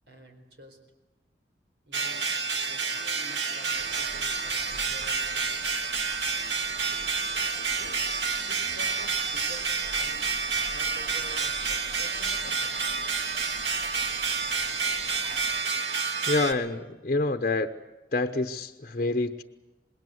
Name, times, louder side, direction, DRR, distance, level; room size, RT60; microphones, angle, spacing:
voice 1, 0.1-0.8 1.9-2.8 3.1-5.6 7.0-7.4 7.8-7.9 8.5-10.3 10.6-12.8, equal, 70° right, 6 dB, 4.3 m, -49 dB
sound 1, 1.9-16.5, right 5 dB, 85° right, 2.0 m, -29 dB
sound 2, 3.7-15.6, right 1 dB, 50° right, 3.2 m, -46 dB
voice 2, 16.3-17.7 18.1-19.4, left 2 dB, 45° left, 6 dB, 0.9 m, -27 dB
26.0 x 21.0 x 8.0 m, 1.1 s
head